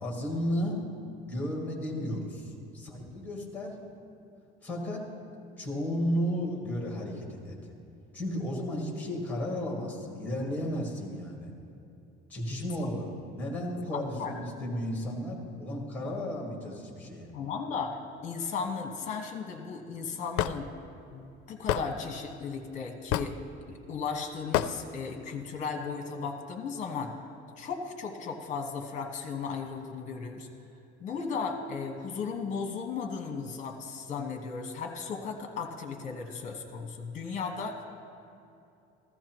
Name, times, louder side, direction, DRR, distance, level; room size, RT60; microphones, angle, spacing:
voice 1, 0.0-0.8 1.3-3.8 4.6-5.1 5.6-7.6 8.1-11.5 12.3-17.3, equal, 5° left, -1 dB, 1.8 m, -33 dB
voice 2, 13.9-14.3 17.3-20.7 21.1-23.4 23.7-27.1 27.6-30.5 31.0-37.8, left 5 dB, 35° left, 3 dB, 1.2 m, -36 dB
Hammer / Wood, 20.4-20.6 21.7-21.9 23.1-23.4 24.5-24.7, left 12 dB, 80° left, 0.4 m, -27 dB
15.0 x 14.5 x 3.0 m, 2.7 s
cardioid pair, 175°, 21 cm